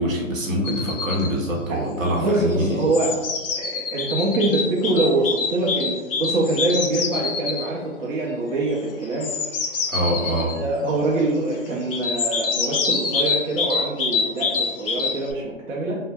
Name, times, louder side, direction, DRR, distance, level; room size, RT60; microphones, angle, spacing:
voice 1, 0.0-2.9 9.9-10.6, equal, 90° right, -2 dB, 1.0 m, -24 dB
sound 1, 0.6-1.3 2.4-7.7 9.0-10.6 11.9-15.3, left 5 dB, 50° left, 0.4 m, -26 dB
voice 2, 2.2-3.2 3.6-9.4 10.6-16.0, right 2 dB, 70° right, -3 dB, 0.6 m, -24 dB
2.2 x 2.0 x 3.3 m, 1.3 s
hypercardioid pair, 150°, 39 cm